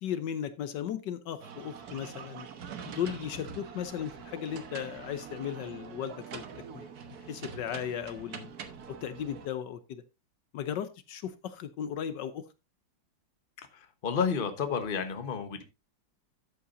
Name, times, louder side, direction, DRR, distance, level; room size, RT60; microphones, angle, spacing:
voice 1, 0.0-2.5 2.9-6.5 6.7-6.8 7.3-8.5 8.9-10.0 10.5-12.5, left 9 dB, 70° left, 1.3 m, -36 dB
sound 1, 1.4-9.5, right 6 dB, 55° right, 1.6 m, -44 dB
voice 2, 13.7-15.6, left 6 dB, 35° left, 1.1 m, -31 dB
12.5 x 8.4 x 2.6 m
omnidirectional pair, 2.0 m